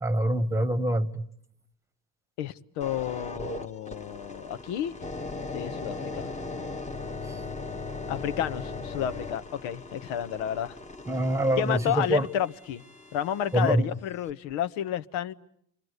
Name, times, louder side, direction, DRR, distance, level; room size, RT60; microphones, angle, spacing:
voice 1, 0.0-1.2 11.1-12.2 13.5-13.9, right 1 dB, 5° right, 1.3 m, -25 dB
voice 2, 2.4-4.9 5.5-6.3 8.1-10.8 11.6-12.8 13.1-15.3, left 9 dB, 70° left, 1.2 m, -31 dB
sound 1, 2.8-13.7 14.3-14.5, left 3 dB, 15° left, 1.3 m, -39 dB
29.5 x 23.5 x 8.1 m
supercardioid pair, 95°, 49 cm